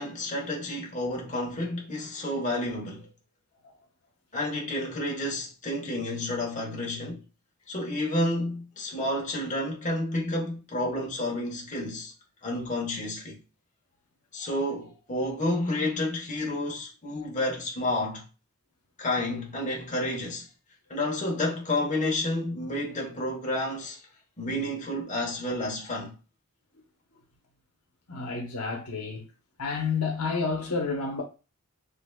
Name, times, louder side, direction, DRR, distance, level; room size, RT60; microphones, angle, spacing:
voice 1, 0.0-3.1 4.3-7.3 7.7-12.1 12.4-13.4 14.3-18.2 19.0-20.5 20.9-24.0 24.4-26.2, left 1 dB, 35° left, 1.1 m, -30 dB
voice 2, 28.1-29.3 29.6-31.2, left 4 dB, 80° left, 0.9 m, -30 dB
3.9 x 3.3 x 2.2 m
head